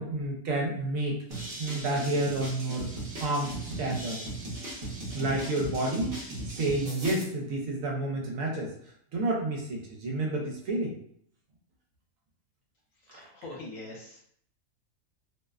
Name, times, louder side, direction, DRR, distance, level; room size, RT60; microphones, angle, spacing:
voice 1, 0.0-2.9 3.2-4.2 5.1-6.3 6.6-8.7 9.1-10.9 13.1-13.3, right 2 dB, 70° right, -1 dB, 1.0 m, -30 dB
sound 1, 1.3-7.2, right 1 dB, 50° right, 0.7 m, -37 dB
voice 2, 13.0-14.2, left 2 dB, 65° left, -3 dB, 1.1 m, -43 dB
2.6 x 2.1 x 2.3 m, 0.65 s
omnidirectional pair, 1.5 m